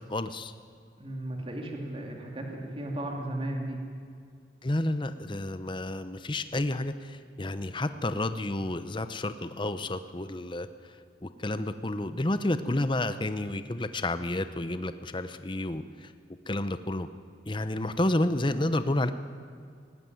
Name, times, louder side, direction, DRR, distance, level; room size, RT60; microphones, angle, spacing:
voice 1, 0.1-0.5 4.6-16.1 16.5-17.1 17.5-19.1, left 1 dB, 25° left, 11 dB, 0.8 m, -30 dB
voice 2, 1.0-3.8, right 1 dB, 30° right, 1 dB, 2.8 m, -35 dB
19.0 x 18.5 x 9.4 m, 2.2 s
head